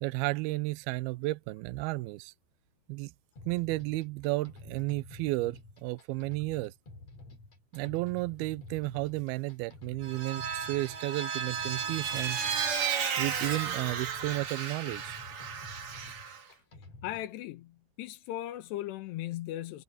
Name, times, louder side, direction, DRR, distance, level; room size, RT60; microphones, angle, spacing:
voice 1, 0.0-2.3 2.9-3.1 3.5-6.7 7.7-12.4 13.2-15.2, right 20 dB, 80° right, 2.4 m, -33 dB
sound 1, 3.4-17.3, left 2 dB, 40° left, 5.9 m, -50 dB
Vehicle, 10.0-16.4, right 7 dB, 50° right, 3.1 m, -34 dB
voice 2, 17.0-19.8, left 14 dB, 85° left, 3.3 m, -38 dB
omnidirectional pair, 4.7 m